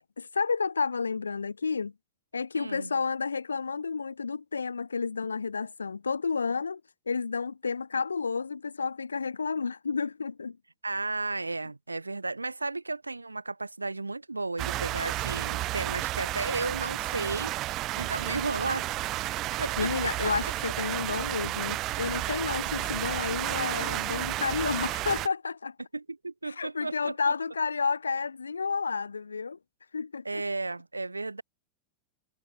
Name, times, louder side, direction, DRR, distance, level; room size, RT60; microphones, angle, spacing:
voice 1, 0.3-1.9 2.3-6.8 7.1-10.6 19.8-25.8 26.4-29.6 29.9-30.4, left 5 dB, 75° left, 0.5 m, -31 dB
voice 2, 2.5-2.9 10.8-19.0 19.6-20.3 25.9-27.3 30.2-31.4, right 3 dB, 80° right, 2.8 m, -34 dB
sound 1, 14.6-25.3, right 16 dB, 35° right, 1.9 m, -32 dB
figure-of-eight pair, 90°, 0 cm